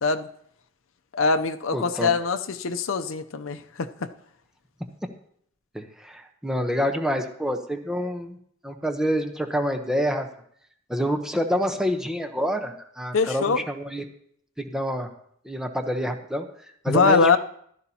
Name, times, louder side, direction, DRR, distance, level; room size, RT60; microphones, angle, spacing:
voice 1, 1.1-4.1 13.1-13.6 16.9-17.4, left 4 dB, 70° left, 0.6 m, -22 dB
voice 2, 1.7-2.1 5.7-8.4 8.6-10.3 10.9-14.0 14.6-15.1 15.4-16.5 16.8-17.4, equal, 5° right, 0.9 m, -27 dB
15.0 x 12.5 x 2.9 m
head